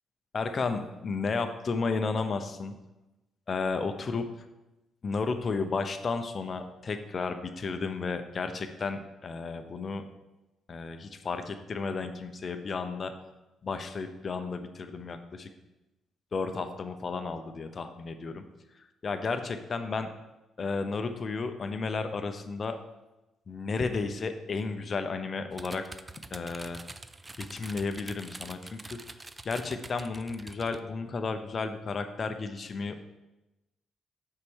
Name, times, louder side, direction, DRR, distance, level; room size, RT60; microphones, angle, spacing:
voice 1, 0.3-2.7 3.5-4.3 5.0-10.0 10.7-13.1 13.6-15.5 16.3-18.4 19.0-20.1 20.6-22.8 23.5-25.8 26.3-26.8 27.4-29.0 29.4-33.0, left 4 dB, 40° left, 8 dB, 0.7 m, -33 dB
sound 1, 25.5-30.8, right 2 dB, 20° right, 0.4 m, -45 dB
5.8 x 4.7 x 6.3 m, 1.0 s
cardioid pair, 90°, 0 cm